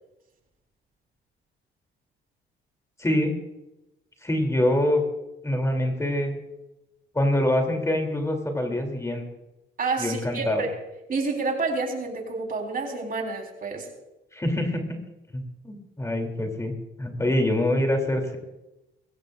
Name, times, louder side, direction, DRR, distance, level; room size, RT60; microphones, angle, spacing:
voice 1, 3.0-3.3 4.2-5.0 5.4-6.4 7.1-9.2 10.0-10.6 14.3-14.8 15.3-18.4, left 1 dB, 15° left, 3 dB, 3.0 m, -25 dB
voice 2, 9.8-10.7 11.1-13.9, right 3 dB, 45° right, 1 dB, 4.1 m, -29 dB
22.0 x 16.0 x 2.5 m, 0.98 s
cardioid pair, 90°, 20 cm